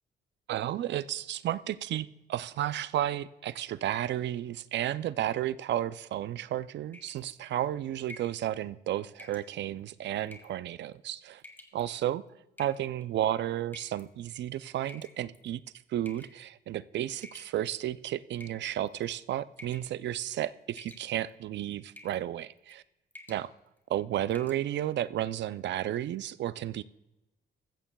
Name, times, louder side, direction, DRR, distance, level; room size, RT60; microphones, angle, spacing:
voice 1, 0.5-11.4 11.7-12.2 12.6-15.6 15.9-22.8 23.3-23.5 23.9-26.8, right 12 dB, 65° right, 16 dB, 0.4 m, -32 dB
sound 1, 6.9-7.3 8.1-8.4 9.2-9.5 10.3-10.6 11.4-11.8 12.6-13.0 13.7-14.1 14.9-15.5 16.1-16.4 17.2-17.9 18.4-19.0 19.6-19.9 20.2-20.5 20.8-21.3 22.0-22.2 22.6-22.8 23.1-23.5 23.8-23.9 24.3-24.6, left 2 dB, 10° left, 1.8 m, -50 dB
15.0 x 13.5 x 2.3 m, 0.96 s
cardioid pair, 90°, 20 cm